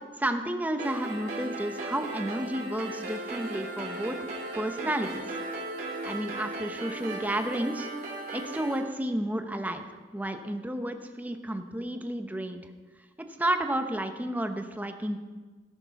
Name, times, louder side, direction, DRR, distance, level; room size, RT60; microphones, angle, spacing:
voice 1, 0.2-4.2 4.5-5.3 6.0-7.9 8.3-9.8 10.1-12.6 13.2-15.2, right 1 dB, 10° right, 6 dB, 0.8 m, -31 dB
sound 1, 0.8-8.8, right 2 dB, 50° right, 2.9 m, -37 dB
17.5 x 6.8 x 5.8 m, 1.4 s
head